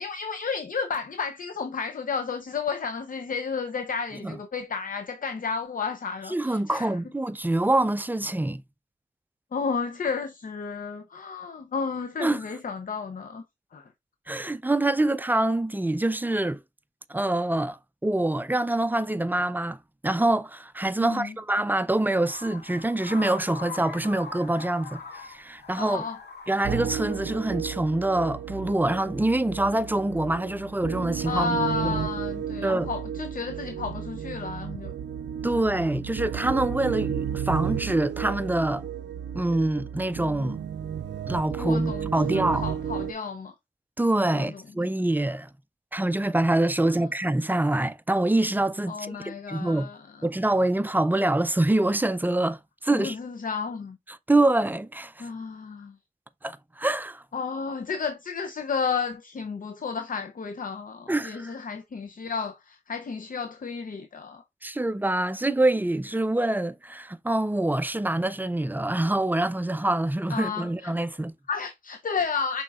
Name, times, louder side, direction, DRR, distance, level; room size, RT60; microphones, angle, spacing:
voice 1, 0.0-6.9 9.5-13.4 13.7-13.9 21.0-21.3 25.8-26.2 31.3-34.9 35.5-35.6 41.6-43.5 44.3-44.6 46.8-47.0 48.9-50.3 52.9-54.0 55.2-56.0 57.3-64.4 70.3-70.9 71.5-72.6, left 5 dB, 50° left, 0.6 m, -32 dB
voice 2, 6.3-8.6 12.2-12.4 14.3-16.6 17.1-19.8 20.0-26.0 26.5-31.6 31.8-32.0 32.6-32.9 35.4-38.8 39.3-40.6 41.3-42.6 44.0-45.5 45.9-49.9 50.2-53.2 54.3-55.3 56.4-57.2 61.1-61.6 64.6-71.3, right 1 dB, 10° right, 0.4 m, -25 dB
sound 1, 22.2-27.3, left 4 dB, 65° left, 1.9 m, -42 dB
sound 2, 26.6-43.1, right 8 dB, 85° right, 0.5 m, -33 dB
5.9 x 3.7 x 2.4 m
cardioid pair, 65°, 18 cm